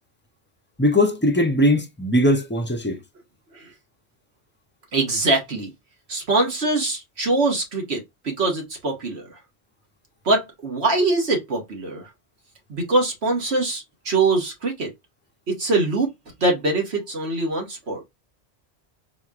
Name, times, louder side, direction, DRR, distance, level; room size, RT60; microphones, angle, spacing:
voice 1, 0.8-3.0, left 1 dB, 15° left, 0.5 m, -20 dB
voice 2, 4.9-5.7 6.1-9.4 10.2-12.1 12.7-14.9 15.5-16.1 16.4-18.0, right 2 dB, 80° right, 1.6 m, -23 dB
4.2 x 3.1 x 2.4 m
omnidirectional pair, 1.1 m